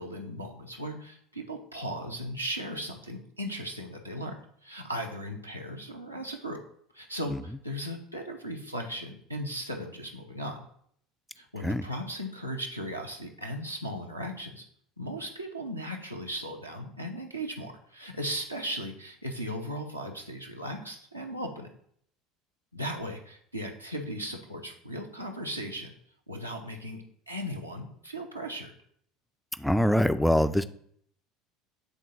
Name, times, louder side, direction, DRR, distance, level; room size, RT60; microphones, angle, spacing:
voice 1, 0.0-6.6 6.9-10.6 11.4-14.6 15.0-21.7 22.7-25.9 26.3-28.7, equal, 90° right, 0 dB, 0.7 m, -37 dB
voice 2, 29.6-30.6, equal, 5° left, 12 dB, 0.3 m, -23 dB
9.3 x 3.6 x 2.8 m, 0.66 s
figure-of-eight pair, 65°, 0 cm